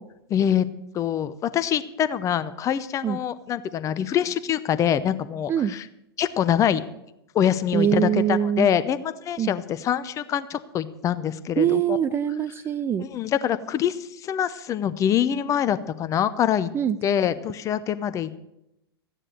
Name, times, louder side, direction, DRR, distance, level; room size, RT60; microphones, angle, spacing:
voice 1, 0.3-0.6 0.9-5.9 6.2-6.8 7.3-12.0 13.0-16.7 17.0-18.4, left 9 dB, 25° left, 14 dB, 0.8 m, -24 dB
voice 2, 7.7-8.7 9.4-9.5 11.6-13.1 16.7-17.0, right 9 dB, 20° right, 14 dB, 0.4 m, -23 dB
14.5 x 9.9 x 6.7 m, 0.84 s
figure-of-eight pair, 100°, 13 cm